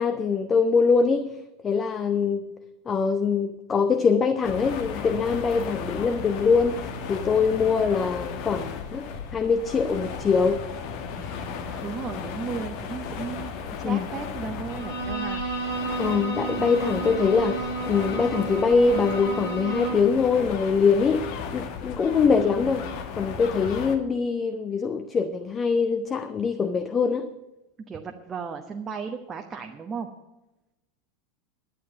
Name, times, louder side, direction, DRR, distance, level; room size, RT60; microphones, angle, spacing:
voice 1, 0.0-1.4 1.6-2.5 2.9-6.8 7.1-9.1 9.3-10.7 13.8-14.1 16.0-21.3 21.5-22.9 23.2-27.3, left 5 dB, 25° left, 10 dB, 0.7 m, -23 dB
sound 1, 4.4-24.0, left 6 dB, 50° left, 1.4 m, -35 dB
voice 2, 11.2-13.5 13.8-15.4 22.7-23.0 27.9-30.1, right 5 dB, 25° right, 3 dB, 1.0 m, -35 dB
Bowed string instrument, 14.7-20.1, right 4 dB, 70° left, 3.4 m, -32 dB
11.0 x 9.5 x 6.6 m, 0.97 s
figure-of-eight pair, 80°, 0 cm